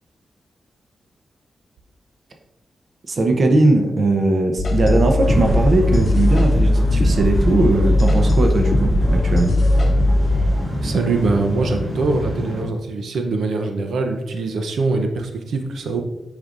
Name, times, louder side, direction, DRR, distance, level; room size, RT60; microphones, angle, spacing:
voice 1, 3.1-9.5, right 2 dB, 40° right, 3 dB, 0.7 m, -19 dB
sound 1, 4.6-10.5, left 1 dB, 40° left, 0.8 m, -18 dB
sound 2, 5.2-12.6, equal, 15° right, 1.9 m, -26 dB
voice 2, 10.8-16.0, right 3 dB, 90° right, 5 dB, 0.7 m, -23 dB
8.1 x 5.2 x 2.5 m, 0.94 s
wide cardioid pair, 180°, 0 cm